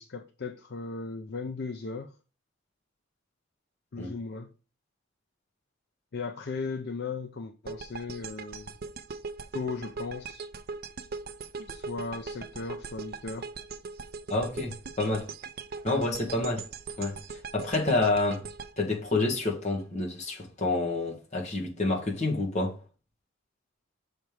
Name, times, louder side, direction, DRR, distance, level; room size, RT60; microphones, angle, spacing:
voice 1, 0.0-2.1 3.9-4.5 6.1-8.8 9.5-10.4 11.7-13.5, left 4 dB, 50° left, 0.5 m, -37 dB
sound 1, 7.7-19.8, right 4 dB, 45° right, 0.4 m, -40 dB
voice 2, 14.3-15.3 15.8-16.7 17.0-18.4 18.8-22.8, left 2 dB, 35° left, 1.4 m, -28 dB
6.6 x 3.4 x 4.5 m
head